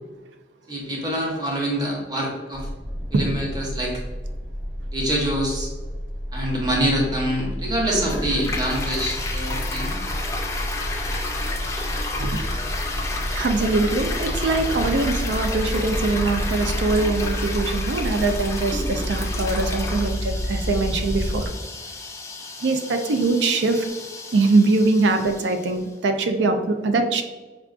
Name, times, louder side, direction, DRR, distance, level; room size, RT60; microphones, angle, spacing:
voice 1, 0.7-2.7 3.1-4.0 4.9-5.7 6.3-10.0, right 1 dB, 25° right, -3 dB, 0.8 m, -25 dB
sound 1, 2.5-21.5, equal, 55° right, 0.8 m, -29 dB
Toilet flush, 7.9-25.8, left 2 dB, 15° left, 0.4 m, -32 dB
voice 2, 13.1-21.5 22.6-23.9 24.3-27.2, right 3 dB, 85° right, 6 dB, 0.4 m, -22 dB
4.7 x 2.4 x 2.4 m, 1.3 s
head